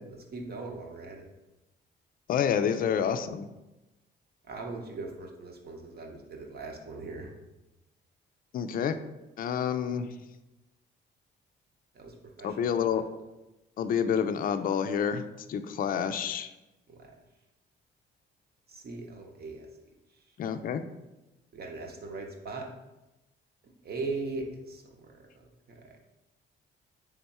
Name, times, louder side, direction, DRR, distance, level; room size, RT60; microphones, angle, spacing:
voice 1, 0.1-1.3 2.8-3.3 4.5-7.3 9.5-9.8 11.9-13.0 16.9-17.1 18.7-19.7 21.5-22.7 23.6-26.0, right 3 dB, 50° right, 1 dB, 0.9 m, -40 dB
voice 2, 2.3-3.5 8.5-8.9 9.4-10.1 12.4-13.0 13.8-15.2 15.5-16.5 20.4-20.8, left 8 dB, 45° left, 10 dB, 0.4 m, -28 dB
3.6 x 3.4 x 4.2 m, 0.99 s
cardioid pair, 90°, 20 cm